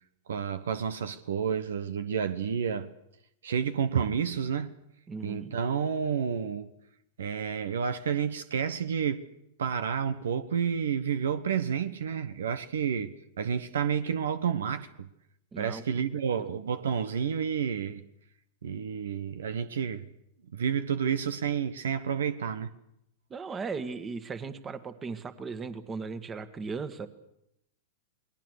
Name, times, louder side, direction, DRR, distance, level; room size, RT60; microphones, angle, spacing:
voice 1, 0.3-2.9 3.4-4.7 5.2-6.7 7.2-9.2 9.6-15.1 15.6-18.0 18.6-20.1 20.5-22.7, right 7 dB, 75° right, 1.0 m, -30 dB
voice 2, 5.1-5.5 15.5-15.8 16.3-16.5 23.3-27.1, right 4 dB, 20° right, 1.9 m, -37 dB
29.0 x 20.5 x 6.5 m
hypercardioid pair, 100°, 0 cm